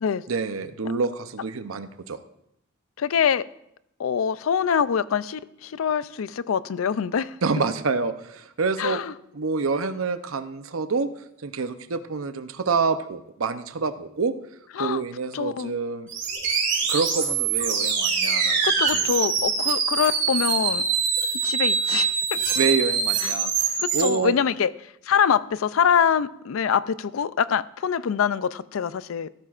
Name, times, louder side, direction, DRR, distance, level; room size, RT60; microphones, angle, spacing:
voice 1, 0.3-2.2 7.4-9.0 9.3-11.1 11.4-14.3 14.8-16.1 16.9-19.1 22.5-23.5 23.9-24.3, right 4 dB, 90° right, 10 dB, 0.7 m, -27 dB
voice 2, 3.0-3.4 4.0-7.3 8.8-9.1 14.8-15.0 15.3-15.7 18.6-20.8 21.4-22.5 23.8-24.7 25.1-29.3, left 7 dB, 85° left, 17 dB, 0.4 m, -24 dB
sound 1, 16.1-24.1, right 6 dB, 60° right, 3.6 m, -24 dB
15.0 x 13.0 x 2.5 m, 0.78 s
head